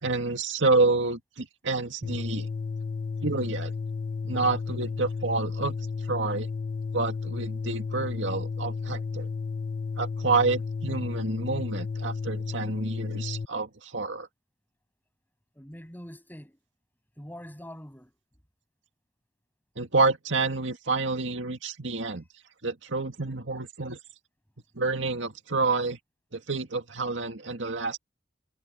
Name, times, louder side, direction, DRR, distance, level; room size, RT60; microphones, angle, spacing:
voice 1, 0.0-2.5 3.2-3.7 4.2-5.8 6.1-6.5 6.9-9.3 10.0-14.3 19.8-22.2 22.6-24.0 24.8-26.0 26.3-28.0, right 3 dB, 80° right, 2.1 m, -28 dB
sound 1, 2.0-13.5, left 4 dB, 45° left, 0.4 m, -33 dB
voice 2, 15.5-16.6 17.2-18.1, equal, 10° left, 8.0 m, -44 dB
head